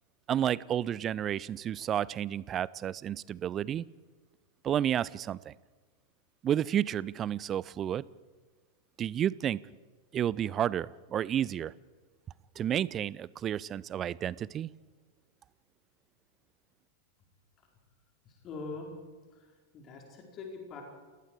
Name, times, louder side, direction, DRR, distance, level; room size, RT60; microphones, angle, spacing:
voice 1, 0.3-3.8 4.6-5.5 6.4-8.1 9.0-9.6 10.1-11.7 12.6-14.7, right 10 dB, 30° right, 22 dB, 0.6 m, -31 dB
voice 2, 18.2-18.9 19.3-19.5 19.7-20.8, left 4 dB, 30° left, 1 dB, 4.8 m, -43 dB
29.0 x 19.5 x 4.9 m, 1.4 s
figure-of-eight pair, 90°, 0 cm